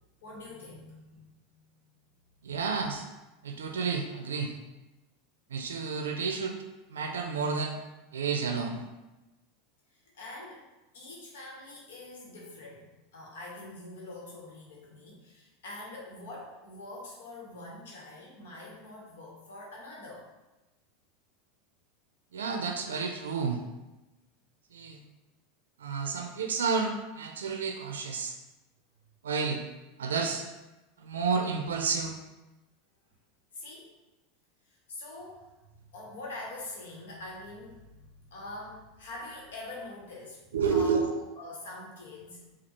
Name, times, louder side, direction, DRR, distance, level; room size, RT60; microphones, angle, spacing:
voice 1, 0.2-1.6 9.9-10.7 10.9-20.3 33.5-33.9 34.7-35.4 35.9-42.5, left 2 dB, 80° left, -3 dB, 1.2 m, -44 dB
voice 2, 2.4-3.1 3.4-4.5 5.5-6.6 6.9-7.8 8.1-8.8 22.3-23.6 24.7-25.0 25.8-28.3 29.2-29.6 30.0-30.5 31.0-32.2 40.5-41.2, right 5 dB, 90° right, 4 dB, 0.4 m, -30 dB
4.4 x 2.4 x 4.3 m, 1.0 s
hypercardioid pair, 95°, 0 cm